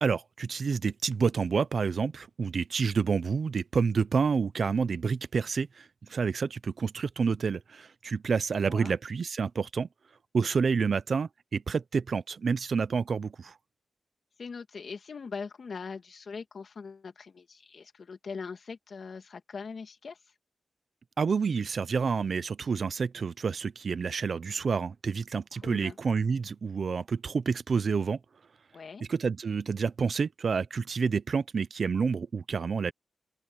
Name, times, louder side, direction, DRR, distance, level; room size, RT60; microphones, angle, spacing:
voice 1, 0.0-9.9 10.3-13.5 21.2-28.2 29.1-32.9, right 5 dB, 60° right, 0.7 m, -29 dB
voice 2, 14.4-20.2 25.5-26.0 28.7-29.0, left 5 dB, 65° left, 2.5 m, -41 dB
open air
wide cardioid pair, 110°, 0 cm